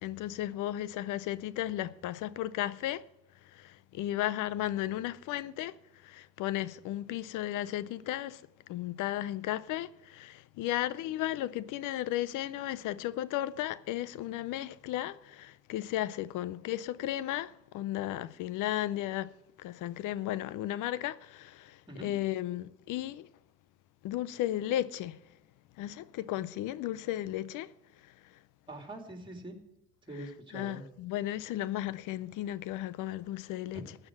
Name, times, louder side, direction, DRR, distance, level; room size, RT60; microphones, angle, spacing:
voice 1, 0.0-3.1 3.4-8.4 8.7-19.3 19.6-23.3 24.0-25.2 25.8-27.7 28.0-28.4 30.5-34.0, left 13 dB, 90° left, 0.5 m, -35 dB
voice 2, 28.7-29.6 30.1-30.8 33.7-33.8, right 1 dB, 15° right, 2.8 m, -43 dB
12.5 x 7.6 x 7.5 m
cardioid pair, 90°, 30 cm